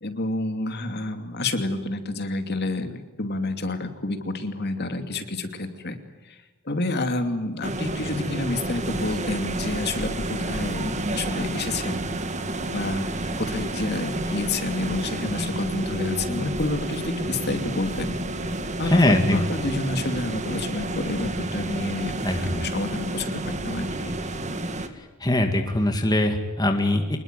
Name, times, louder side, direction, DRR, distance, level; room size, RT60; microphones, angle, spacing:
voice 1, 0.0-6.0 6.7-12.1 12.7-13.1 13.4-18.1 18.8-24.1, left 2 dB, 45° left, 7 dB, 2.7 m, -29 dB
sound 1, 7.6-24.9, right 1 dB, 30° right, 2.0 m, -30 dB
voice 2, 18.8-19.4 22.2-22.6 24.9-27.2, left 1 dB, 20° left, 5 dB, 2.1 m, -22 dB
26.0 x 21.0 x 9.2 m, 1.2 s
head